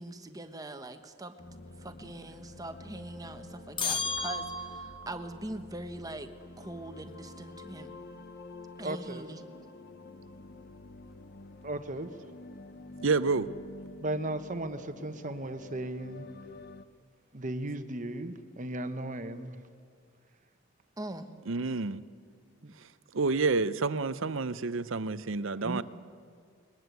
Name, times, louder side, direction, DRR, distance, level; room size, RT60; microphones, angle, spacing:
voice 1, 0.0-1.4 1.8-7.9 8.8-9.4 21.0-21.3, right 1 dB, 15° right, 1.2 m, -42 dB
sound 1, 1.4-16.8, left 2 dB, 50° left, 0.9 m, -48 dB
sound 2, 3.8-5.1, left 4 dB, 25° left, 1.1 m, -33 dB
voice 2, 8.8-9.2 11.6-12.1 14.0-16.2 17.3-19.6 22.6-22.7 25.5-25.8, right 1 dB, 40° right, 1.2 m, -36 dB
voice 3, 13.0-13.5 21.5-22.0 23.1-25.8, right 4 dB, 65° right, 0.7 m, -29 dB
22.5 x 21.0 x 8.2 m
head